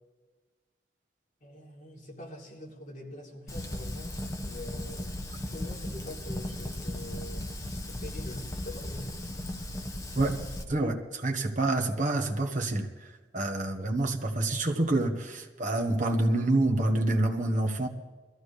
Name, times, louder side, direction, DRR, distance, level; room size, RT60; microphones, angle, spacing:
voice 1, 1.4-5.2 5.5-7.5 7.8-9.2, left 1 dB, 45° left, -4 dB, 3.5 m, -44 dB
Fire, 3.5-10.6, left 1 dB, 15° left, 1.0 m, -36 dB
voice 2, 10.7-12.9 13.3-17.9, right 2 dB, 45° right, 2 dB, 1.4 m, -27 dB
22.0 x 14.5 x 3.3 m, 1.4 s
head